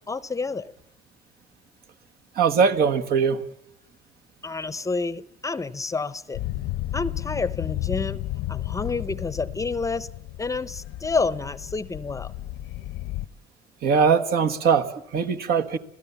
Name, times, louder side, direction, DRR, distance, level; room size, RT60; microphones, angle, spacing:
voice 1, 0.1-0.7 4.4-6.4 6.9-8.2 8.5-10.1 10.4-12.3, left 4 dB, 20° left, 18 dB, 0.7 m, -29 dB
voice 2, 2.3-3.4 13.8-15.8, right 6 dB, 65° right, 7 dB, 1.6 m, -21 dB
sound 1, 6.3-13.3, left 15 dB, 90° left, 0.8 m, -33 dB
27.0 x 16.5 x 7.1 m, 0.81 s
cardioid pair, 110°, 17 cm